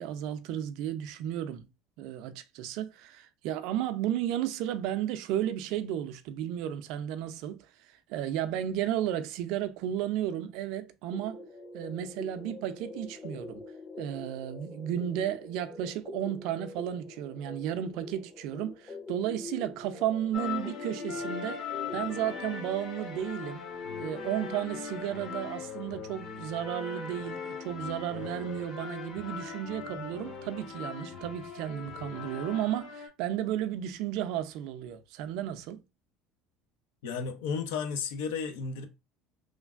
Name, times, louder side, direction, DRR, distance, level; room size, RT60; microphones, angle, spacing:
voice 1, 0.0-1.7 2.0-11.4 11.7-13.6 14.0-21.6 21.9-23.6 24.0-35.8, right 11 dB, 70° right, 0.4 m, -33 dB
sound 1, 11.1-22.4, left 3 dB, 25° left, 0.5 m, -44 dB
sound 2, 20.3-33.1, left 6 dB, 50° left, 1.1 m, -39 dB
voice 2, 37.0-38.8, left 5 dB, 85° left, 0.6 m, -33 dB
3.2 x 2.4 x 2.4 m
supercardioid pair, 95°, 0 cm